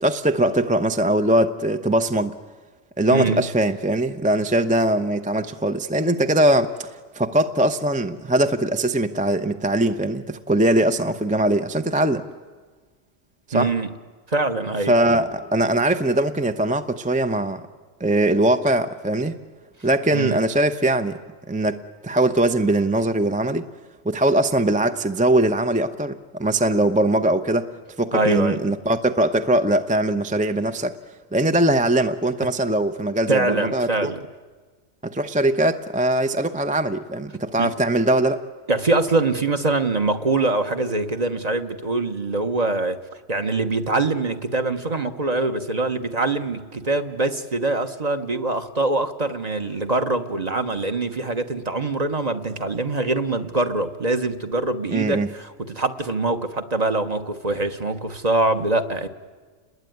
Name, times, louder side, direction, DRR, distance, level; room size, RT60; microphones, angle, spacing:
voice 1, 0.0-2.4 3.0-6.9 7.1-12.3 13.5-13.7 14.9-17.7 18.0-19.4 19.8-21.2 21.5-23.7 24.0-27.7 28.0-31.0 31.3-34.1 35.0-38.4 54.9-55.3, right 1 dB, 10° right, 0.6 m, -21 dB
voice 2, 13.5-13.9 14.3-14.9 20.1-20.4 28.1-28.6 33.3-34.2 37.6-37.7 38.7-43.0 43.3-59.1, right 2 dB, 35° right, 1.3 m, -23 dB
29.5 x 21.0 x 9.4 m
omnidirectional pair, 1.3 m